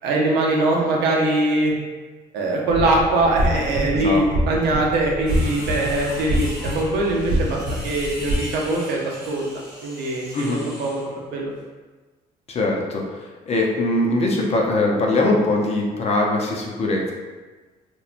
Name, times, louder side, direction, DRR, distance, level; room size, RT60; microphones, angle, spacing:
voice 1, 0.0-1.7 2.3-9.5 9.8-11.0 11.3-11.5, right 2 dB, 85° right, -2 dB, 0.6 m, -22 dB
sound 1, 2.7-8.3, equal, 60° right, 0.9 m, -26 dB
voice 2, 3.9-4.2 10.3-10.6 12.5-17.1, left 2 dB, 40° left, -1 dB, 0.5 m, -22 dB
sound 2, 5.3-11.1, equal, 5° right, 1.2 m, -38 dB
2.9 x 2.2 x 2.4 m, 1.3 s
cardioid pair, 110°, 17 cm